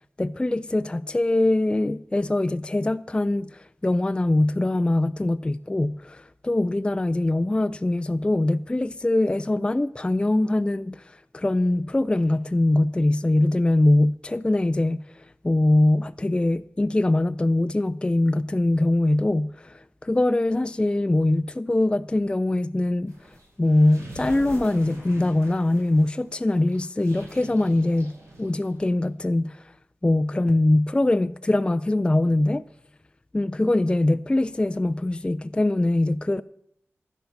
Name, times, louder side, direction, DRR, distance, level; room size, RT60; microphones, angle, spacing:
voice 1, 0.2-29.7 30.0-32.6 33.3-36.4, left 2 dB, 20° left, 0.3 m, -23 dB
sound 1, 23.1-28.9, right 1 dB, 90° right, 4.5 m, -44 dB
12.5 x 9.1 x 5.7 m
cardioid pair, 50°, 5 cm